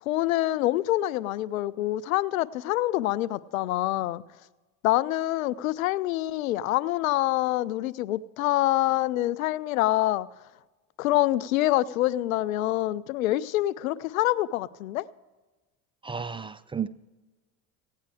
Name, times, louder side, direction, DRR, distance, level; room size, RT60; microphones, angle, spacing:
voice 1, 0.1-4.2 4.8-10.3 11.0-15.0, left 15 dB, 90° left, 0.5 m, -26 dB
voice 2, 16.0-16.9, right 6 dB, 15° right, 0.3 m, -32 dB
16.5 x 9.3 x 4.8 m
hypercardioid pair, 80°, 40 cm